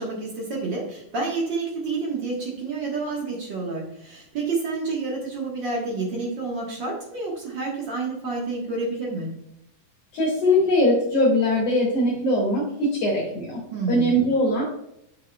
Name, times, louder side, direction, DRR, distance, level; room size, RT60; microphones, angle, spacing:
voice 1, 0.0-9.3 13.7-14.1, right 3 dB, 65° right, -2 dB, 1.1 m, -29 dB
voice 2, 10.1-13.6 13.9-14.6, left 1 dB, 55° left, -3 dB, 2.3 m, -21 dB
7.2 x 6.6 x 2.2 m, 0.77 s
omnidirectional pair, 4.1 m